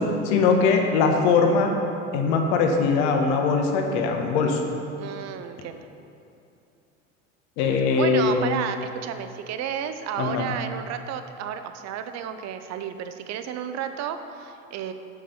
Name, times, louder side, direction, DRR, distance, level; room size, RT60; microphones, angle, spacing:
voice 1, 0.0-1.8 2.1-4.6 7.6-8.5 10.2-10.4, left 4 dB, 65° left, 3 dB, 1.1 m, -21 dB
voice 2, 5.0-5.9 7.9-14.9, right 8 dB, 45° right, 9 dB, 0.7 m, -32 dB
7.0 x 7.0 x 5.5 m, 2.7 s
hypercardioid pair, 75°, 38 cm